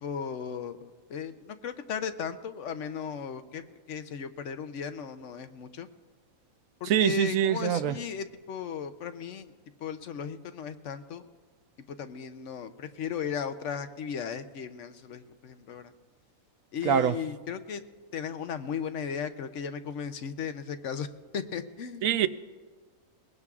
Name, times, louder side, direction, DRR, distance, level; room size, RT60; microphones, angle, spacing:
voice 1, 0.0-5.9 6.8-9.5 9.8-11.2 11.9-15.9 16.7-17.8 18.1-21.1 21.3-22.2, left 7 dB, 65° left, 10 dB, 0.9 m, -36 dB
voice 2, 6.9-7.9 16.8-17.1 22.0-22.3, right 9 dB, 70° right, 12 dB, 0.9 m, -24 dB
21.5 x 20.0 x 2.4 m, 1.4 s
omnidirectional pair, 1.5 m